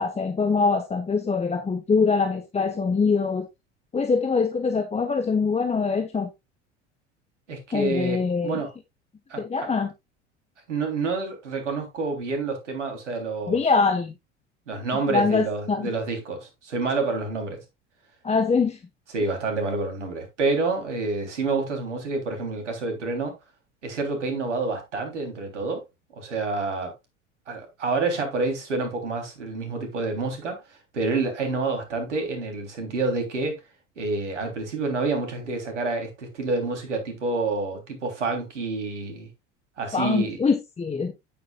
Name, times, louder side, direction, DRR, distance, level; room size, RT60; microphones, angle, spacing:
voice 1, 0.0-3.5 3.9-6.3 7.7-8.6 9.4-9.9 13.5-14.1 15.1-15.9 18.2-18.8 39.9-41.1, left 4 dB, 20° left, 1.3 m, -23 dB
voice 2, 7.5-8.7 9.3-9.7 10.7-13.6 14.7-17.6 19.1-23.3 23.8-25.8 26.1-26.9 27.5-33.6 34.0-39.3 39.8-40.4, right 3 dB, 80° right, 3.5 m, -28 dB
10.0 x 9.7 x 2.4 m
figure-of-eight pair, 75°, 35 cm